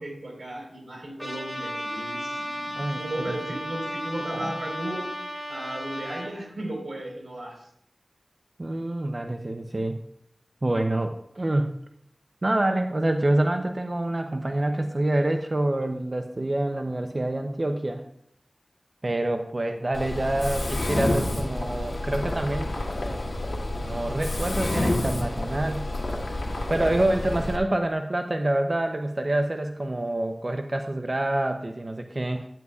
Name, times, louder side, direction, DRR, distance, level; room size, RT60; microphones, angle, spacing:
voice 1, 0.0-7.7, right 1 dB, 70° right, -2 dB, 4.0 m, -35 dB
Trumpet, 1.2-6.3, equal, 5° left, 3.2 m, -34 dB
voice 2, 3.3-3.6 4.3-4.5 8.6-10.0 10.6-11.7 12.4-18.0 19.0-22.7 23.8-25.9 26.7-32.5, right 1 dB, 45° right, 6 dB, 0.6 m, -27 dB
Mechanisms, 19.9-27.6, left 1 dB, 85° left, 1.9 m, -29 dB
12.0 x 9.4 x 2.3 m, 0.72 s
wide cardioid pair, 55°, 0 cm